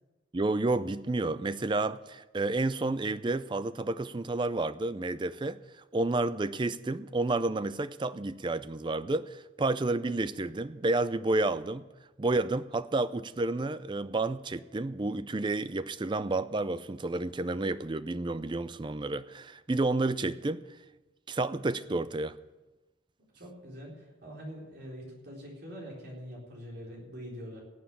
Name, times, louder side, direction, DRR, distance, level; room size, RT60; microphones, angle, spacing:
voice 1, 0.3-5.6 5.9-11.8 12.2-20.6 21.3-22.4, right 2 dB, 25° right, 14 dB, 0.4 m, -30 dB
voice 2, 23.3-27.6, equal, 55° right, -3 dB, 4.1 m, -44 dB
18.0 x 7.5 x 7.1 m, 1.1 s
head